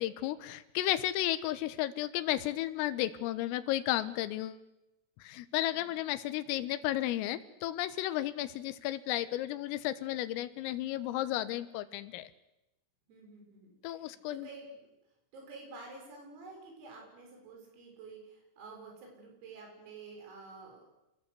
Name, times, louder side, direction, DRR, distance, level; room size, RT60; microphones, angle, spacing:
voice 1, 0.0-4.6 5.2-12.3 13.8-14.5, left 14 dB, 85° left, 12 dB, 3.8 m, -33 dB
voice 2, 13.1-14.8 15.3-20.9, right 3 dB, 85° right, 1 dB, 9.5 m, -50 dB
28.5 x 21.0 x 8.3 m, 0.91 s
omnidirectional pair, 5.9 m